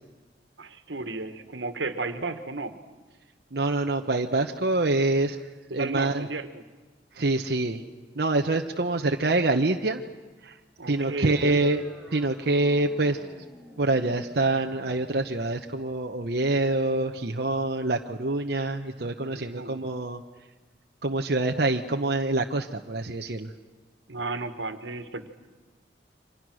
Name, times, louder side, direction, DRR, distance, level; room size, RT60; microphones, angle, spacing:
voice 1, 0.6-2.8 5.7-6.6 10.8-11.6 18.9-19.9 24.1-25.3, right 3 dB, 85° right, 9 dB, 1.8 m, -34 dB
voice 2, 3.5-6.3 7.1-7.8 8.1-10.0 10.4-10.6 10.8-11.8 12.1-13.3 13.8-20.2 21.0-23.5, right 2 dB, 60° right, 3 dB, 1.0 m, -26 dB
sound 1, 11.0-18.0, equal, ahead, 2.5 m, -50 dB
29.5 x 25.0 x 6.4 m, 1.3 s
head